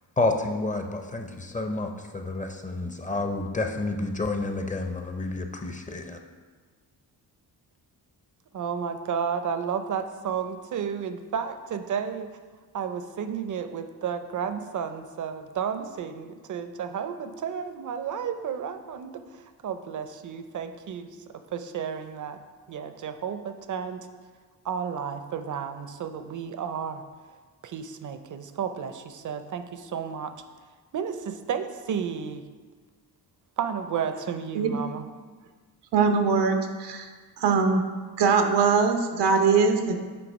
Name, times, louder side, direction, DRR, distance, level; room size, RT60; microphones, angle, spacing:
voice 1, 0.2-6.2, left 2 dB, 20° left, 4 dB, 0.5 m, -29 dB
voice 2, 8.5-12.3 12.7-21.1 21.5-22.4 22.7-24.1 24.6-27.0 27.6-30.3 30.9-32.4 33.6-35.0, right 7 dB, 50° right, 9 dB, 0.6 m, -32 dB
voice 3, 35.9-37.1 37.4-37.8 38.2-39.9, right 5 dB, 90° right, 5 dB, 0.8 m, -21 dB
7.9 x 3.2 x 5.2 m, 1.5 s
cardioid pair, 100°, 40 cm